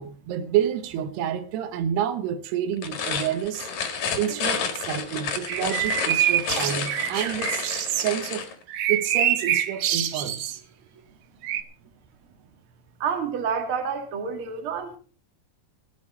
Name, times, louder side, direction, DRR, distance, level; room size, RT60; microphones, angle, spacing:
voice 1, 0.0-3.7 4.2-8.5 8.9-10.6, right 10 dB, 85° right, 3.1 m, -28 dB
sound 1, 2.7-8.5, left 6 dB, 55° left, 2.8 m, -30 dB
sound 2, 5.5-8.1 8.7-10.5 11.4-11.6, right 11 dB, 70° right, 1.8 m, -25 dB
voice 2, 13.0-15.0, right 6 dB, 40° right, 2.3 m, -28 dB
17.0 x 12.0 x 4.3 m
omnidirectional pair, 4.6 m